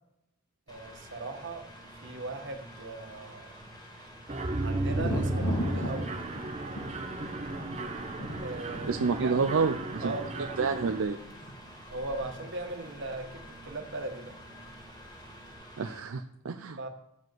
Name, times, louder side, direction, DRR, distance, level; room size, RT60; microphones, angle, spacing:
Mechanical fan, 0.7-16.0, equal, 20° left, 2.2 m, -49 dB
voice 1, 0.7-1.7 2.0-3.6 4.6-6.3 8.4-9.3 10.0-10.6 11.9-14.4 16.8-16.9, right 2 dB, 55° right, 3 dB, 1.5 m, -38 dB
Mechanisms, 4.3-11.0, right 2 dB, 30° right, 0.9 m, -34 dB
Thunder, 4.7-14.4 14.6-15.4, left 1 dB, 80° left, 2.8 m, -39 dB
voice 2, 8.9-10.1 10.6-11.2 15.8-16.9, right 4 dB, 75° right, 7 dB, 0.5 m, -29 dB
12.5 x 5.0 x 7.8 m, 0.88 s
head